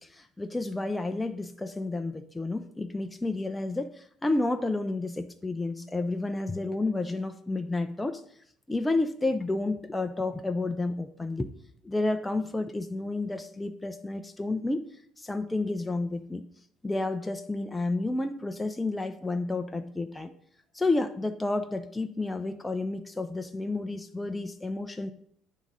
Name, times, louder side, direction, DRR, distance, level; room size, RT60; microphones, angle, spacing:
voice 1, 0.0-8.2 8.7-11.5 11.8-14.9 15.2-16.4 16.8-20.3 20.7-25.1, left 2 dB, 5° left, 6 dB, 0.3 m, -30 dB
10.5 x 3.6 x 5.3 m, 0.66 s
cardioid pair, 175°, 0 cm